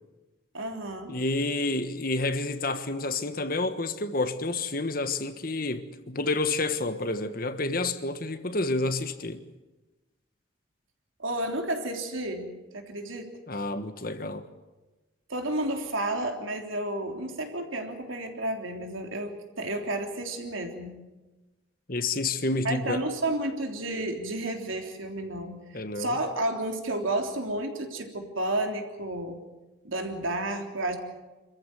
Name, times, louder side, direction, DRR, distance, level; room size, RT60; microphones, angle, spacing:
voice 1, 0.5-1.2 11.2-13.4 15.3-21.0 22.6-29.4 29.8-31.0, right 1 dB, 90° right, 3.5 m, -31 dB
voice 2, 1.1-9.4 13.5-14.5 21.9-23.1 25.7-26.2, left 2 dB, 45° left, 1.4 m, -29 dB
26.5 x 14.5 x 9.2 m
head